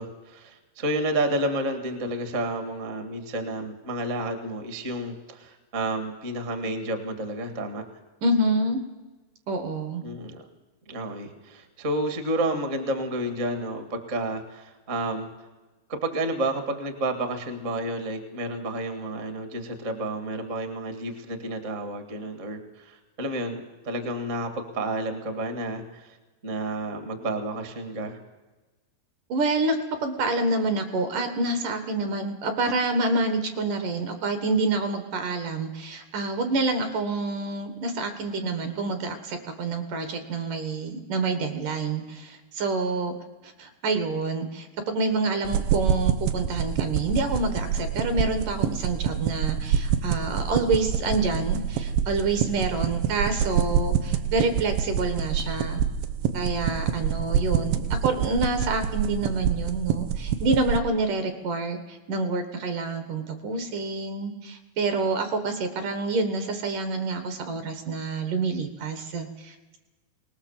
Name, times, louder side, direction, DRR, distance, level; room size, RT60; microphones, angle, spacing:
voice 1, 0.0-7.8 10.0-10.4 10.9-15.3 15.9-26.2 26.4-28.1, right 1 dB, 40° right, 6 dB, 1.1 m, -30 dB
voice 2, 8.2-8.8 9.5-10.0 29.3-43.1 43.4-55.8 56.3-69.8, right 3 dB, 60° right, 7 dB, 2.5 m, -27 dB
sound 1, 45.4-60.8, right 8 dB, 85° right, 3.2 m, -27 dB
22.5 x 19.5 x 7.3 m, 1.2 s
omnidirectional pair, 4.9 m